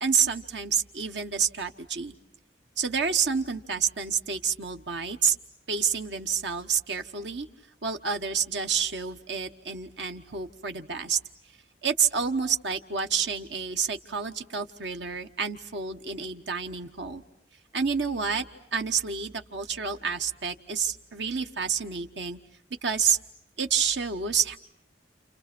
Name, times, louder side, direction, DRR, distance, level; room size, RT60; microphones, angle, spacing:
voice 1, 0.0-2.1 2.8-5.4 5.7-7.5 7.8-11.2 11.8-17.2 17.7-18.4 18.7-22.4 22.8-23.2 23.6-24.6, right 6 dB, 70° right, 6 dB, 1.2 m, -28 dB
29.5 x 29.0 x 6.1 m, 0.77 s
head